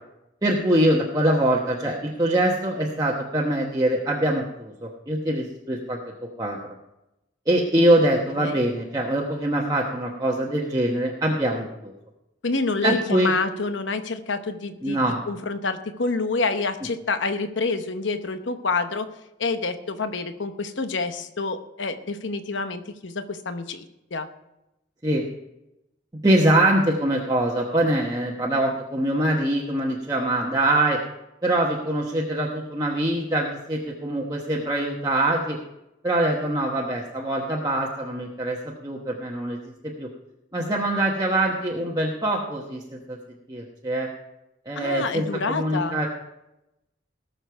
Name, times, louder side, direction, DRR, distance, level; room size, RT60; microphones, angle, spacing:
voice 1, 0.4-6.0 6.4-6.6 7.5-11.9 12.8-13.3 14.8-15.2 25.0-25.2 26.2-31.0 31.4-35.6 36.0-40.1 40.5-43.2 43.5-44.1 44.7-46.1, right 1 dB, 20° right, -3 dB, 1.1 m, -23 dB
voice 2, 12.4-15.0 15.3-19.1 19.4-23.8 24.1-24.3 44.8-46.0, left 3 dB, 75° left, 9 dB, 0.9 m, -27 dB
18.5 x 6.7 x 4.6 m, 0.90 s
head